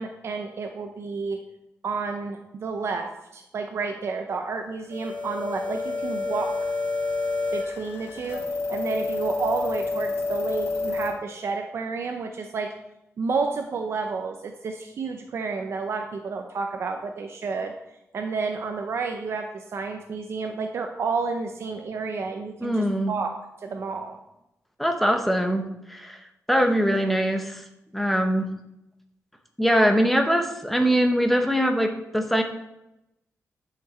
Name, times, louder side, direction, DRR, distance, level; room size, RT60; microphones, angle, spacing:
voice 1, 0.0-1.4 1.8-6.5 7.5-8.4 8.7-12.7 13.2-17.7 18.1-23.3 23.6-24.2, right 4 dB, 55° right, 4 dB, 0.7 m, -30 dB
sound 1, 4.9-11.1, left 3 dB, 55° left, 3.1 m, -29 dB
voice 2, 22.6-23.1 24.8-26.2 26.5-27.6 27.9-28.5 29.6-32.4, equal, 5° left, 4 dB, 0.8 m, -22 dB
10.5 x 5.9 x 4.3 m, 0.88 s
wide cardioid pair, 165°, 5 cm